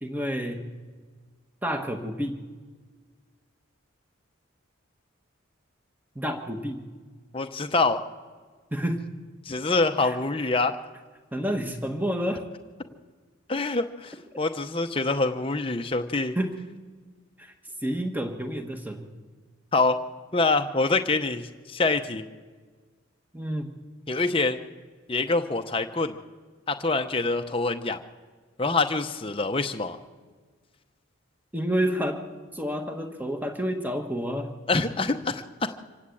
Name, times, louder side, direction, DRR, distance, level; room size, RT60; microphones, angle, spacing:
voice 1, 0.0-0.7 1.6-2.4 6.1-6.9 8.7-9.1 10.0-10.2 11.3-12.5 16.3-16.7 17.4-17.5 17.8-19.1 23.3-23.7 31.5-32.2 32.5-34.5, equal, 10° right, 5 dB, 1.5 m, -29 dB
voice 2, 7.3-8.0 9.4-10.7 13.5-16.3 19.7-20.0 20.3-22.2 24.1-24.6 25.1-26.2 26.7-28.0 28.6-30.0 34.7-35.7, left 3 dB, 25° left, 6 dB, 0.9 m, -25 dB
25.5 x 17.5 x 8.6 m, 1.5 s
head